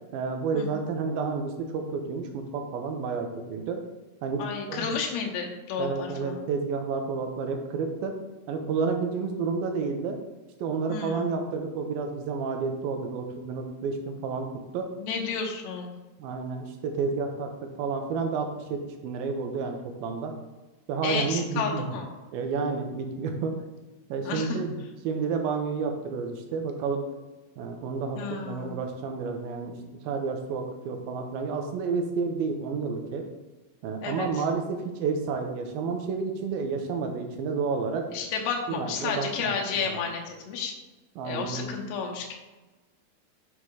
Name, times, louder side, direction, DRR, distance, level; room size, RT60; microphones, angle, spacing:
voice 1, 0.1-3.8 4.2-4.4 4.7-4.9 5.8-8.1 8.5-10.2 10.6-14.9 16.2-20.3 20.9-21.9 22.3-23.5 24.1-24.7 25.0-27.1 27.6-29.7 30.0-33.2 33.8-38.1 38.7-39.6 39.8-40.0 41.2-41.8, right 5 dB, 75° right, 4 dB, 2.5 m, -30 dB
voice 2, 4.4-6.4 10.9-11.3 15.0-15.9 21.0-22.1 24.2-24.6 28.2-28.8 34.0-34.4 38.1-40.7 41.2-42.4, left 5 dB, 80° left, 1 dB, 3.2 m, -32 dB
8.1 x 5.7 x 4.8 m, 1.2 s
omnidirectional pair, 4.8 m